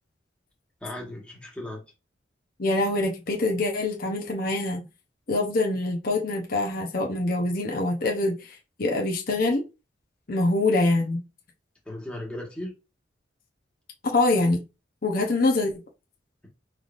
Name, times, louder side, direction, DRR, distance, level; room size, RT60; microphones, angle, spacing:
voice 1, 0.8-1.8 11.8-12.7, left 1 dB, 5° left, 1.4 m, -36 dB
voice 2, 2.6-4.9 5.3-9.6 10.3-11.2 14.0-14.6 15.0-15.7, left 2 dB, 50° left, 0.9 m, -24 dB
5.6 x 3.4 x 2.5 m
head